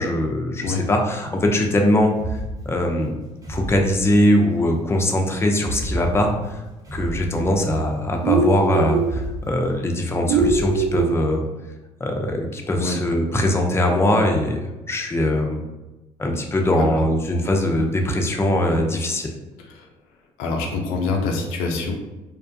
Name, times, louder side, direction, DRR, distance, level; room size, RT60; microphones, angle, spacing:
voice 1, 0.0-2.1 2.7-3.2 3.5-6.6 6.9-11.4 12.0-15.6 16.2-19.3, left 1 dB, 15° left, 2 dB, 0.5 m, -21 dB
sound 1, 2.1-4.7 5.5-8.1 8.9-11.1, right 1 dB, 25° right, 1.0 m, -33 dB
sound 2, 8.2-9.1 10.3-11.2, right 4 dB, 65° right, 0.4 m, -20 dB
voice 2, 20.4-21.9, left 4 dB, 90° left, 1 dB, 0.4 m, -25 dB
2.5 x 2.2 x 2.6 m, 1.1 s
supercardioid pair, 70°, 15 cm